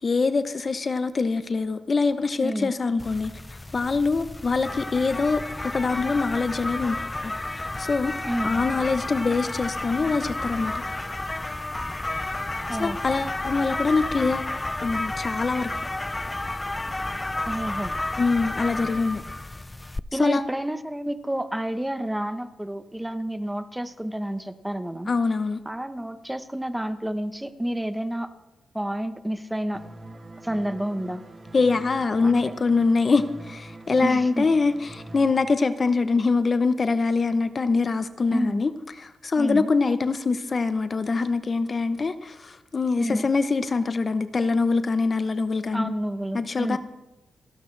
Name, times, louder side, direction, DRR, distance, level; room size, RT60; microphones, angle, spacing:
voice 1, 0.0-3.3 3.7-7.0 7.2-7.3 7.8-10.8 12.8-14.5 14.8-15.7 18.2-19.2 20.1-20.4 25.1-25.6 31.5-38.7 39.0-45.9 46.3-46.8, left 4 dB, 35° left, 0.8 m, -24 dB
voice 2, 2.4-2.7 8.3-8.5 12.7-13.0 17.4-17.9 20.1-25.1 25.6-28.3 28.7-29.8 30.4-31.2 32.2-32.4 34.0-34.5 38.3-38.7 39.4-39.7 43.0-43.2 45.7-46.8, right 1 dB, 5° right, 0.9 m, -29 dB
sound 1, 3.0-20.0, left 2 dB, 15° left, 0.4 m, -31 dB
sound 2, 29.7-35.3, right 2 dB, 25° right, 1.3 m, -43 dB
29.5 x 12.0 x 3.3 m
cardioid pair, 100°, 0 cm